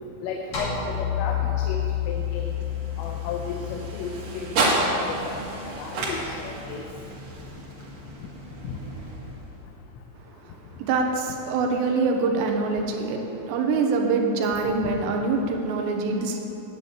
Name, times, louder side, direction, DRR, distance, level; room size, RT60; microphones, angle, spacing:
voice 1, 0.2-1.8 2.1-2.5 3.0-6.8 8.6-8.8 14.8-14.9, left 5 dB, 90° left, 1 dB, 3.5 m, -34 dB
sound 1, 0.5-4.9, left 10 dB, 40° left, 2.8 m, -29 dB
sound 2, 1.5-9.8, right 2 dB, 50° right, 2.3 m, -31 dB
voice 2, 10.8-16.4, right 4 dB, 75° right, 2 dB, 2.8 m, -24 dB
10.5 x 8.7 x 8.6 m, 2.9 s
omnidirectional pair, 5.7 m